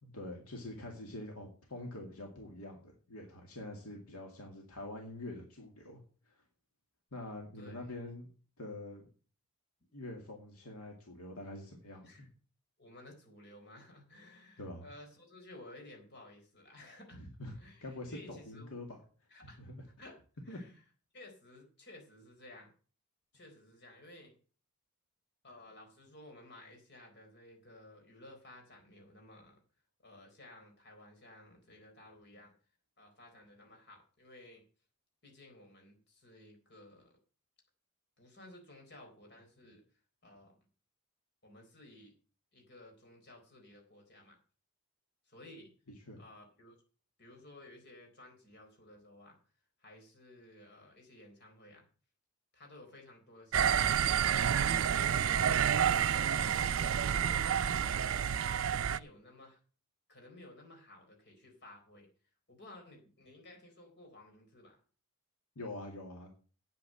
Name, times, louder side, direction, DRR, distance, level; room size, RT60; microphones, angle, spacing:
voice 1, 0.0-6.3 7.1-8.3 8.6-9.1 9.9-12.3 14.6-14.9 17.1-17.5 17.8-19.0 19.6-19.8 20.5-20.6 46.1-46.2 65.6-66.3, left 1 dB, 80° left, 2 dB, 2.2 m, -45 dB
voice 2, 12.8-17.2 17.6-18.7 19.3-19.6 19.9-20.2 20.4-20.7 21.1-22.7 23.3-24.3 25.4-29.6 30.0-32.5 33.0-34.6 35.2-37.2 38.2-39.8 40.2-40.6 41.4-42.2 42.5-44.4 45.3-45.7 46.2-46.8 47.2-49.4 49.8-51.9 52.5-54.0 54.9-59.6 60.1-62.1 62.5-64.8, left 1 dB, 50° left, 2 dB, 4.0 m, -55 dB
sound 1, 53.5-59.0, right 8 dB, 60° right, 0.4 m, -29 dB
8.7 x 8.5 x 7.5 m, 0.39 s
head